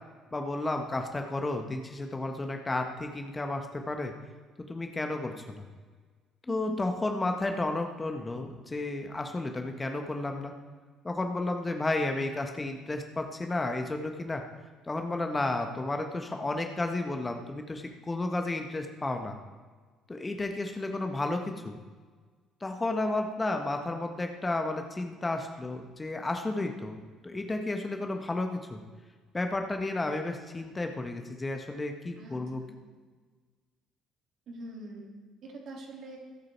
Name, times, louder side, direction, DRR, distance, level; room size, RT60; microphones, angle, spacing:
voice 1, 0.3-4.1 4.7-5.6 6.5-10.5 11.0-14.4 14.9-19.4 20.1-21.8 22.6-27.0 27.2-28.8 29.3-32.6, left 2 dB, 20° left, 5 dB, 1.5 m, -32 dB
voice 2, 6.5-6.9 32.2-32.4 34.5-35.1 35.4-36.2, right 1 dB, 50° right, -1 dB, 3.3 m, -43 dB
21.5 x 8.4 x 4.6 m, 1.5 s
figure-of-eight pair, 50°, 0 cm